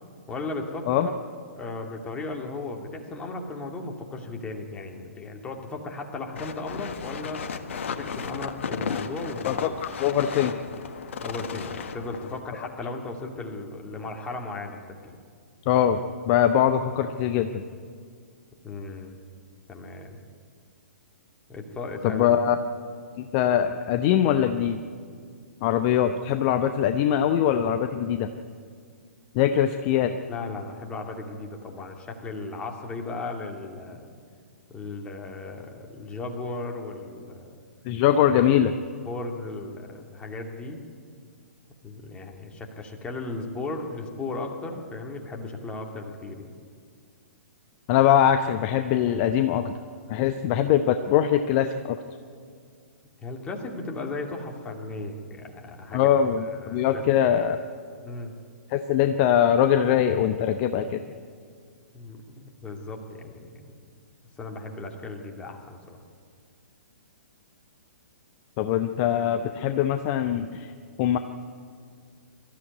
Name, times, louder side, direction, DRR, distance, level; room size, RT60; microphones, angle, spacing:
voice 1, 0.3-1.1 1.6-7.4 7.9-9.7 11.2-15.2 18.6-19.2 19.7-20.2 21.5-22.4 30.3-34.1 34.7-37.6 39.1-40.8 41.8-46.5 53.2-56.1 56.5-57.0 58.0-58.3 61.9-62.2 62.6-63.9 64.4-66.0, left 3 dB, 15° left, 2 dB, 2.4 m, -36 dB
sound 1, 6.3-12.4, left 6 dB, 55° left, 1.4 m, -34 dB
voice 2, 9.4-10.5 15.7-16.0 16.3-17.6 22.0-22.6 23.2-24.8 25.6-28.3 29.3-30.2 37.9-38.7 47.9-49.7 50.1-52.0 55.9-57.6 58.7-61.0 68.6-70.7 71.0-71.2, left 10 dB, 35° left, 8 dB, 0.8 m, -22 dB
23.0 x 13.5 x 9.5 m, 2.1 s
figure-of-eight pair, 120°, 8 cm